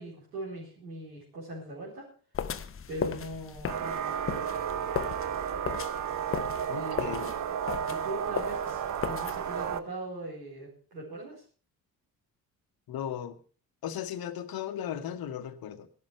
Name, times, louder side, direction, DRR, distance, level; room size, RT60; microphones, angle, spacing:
voice 1, 0.0-2.1 2.9-4.2 6.7-7.2 7.9-11.4, right 1 dB, 75° right, -6 dB, 4.4 m, -40 dB
sound 1, 2.3-9.8, left 8 dB, 25° left, 0.9 m, -37 dB
sound 2, 3.7-9.8, right 9 dB, 35° right, 0.8 m, -33 dB
voice 2, 6.7-7.3 12.9-13.3 13.8-15.9, left 9 dB, 45° left, 11 dB, 1.3 m, -36 dB
17.0 x 12.0 x 4.4 m, 0.39 s
figure-of-eight pair, 45°, 50 cm